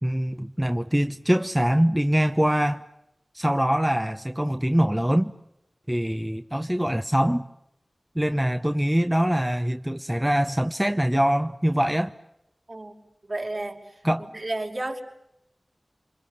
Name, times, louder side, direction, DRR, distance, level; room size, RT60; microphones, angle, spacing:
voice 1, 0.0-2.8 3.3-5.3 5.9-7.5 8.1-12.1 14.0-14.3, equal, 10° right, 1.0 m, -23 dB
voice 2, 13.2-13.8 14.3-15.0, right 2 dB, 50° right, 5.5 m, -31 dB
28.5 x 27.0 x 7.1 m
wide cardioid pair, 70°, 0 cm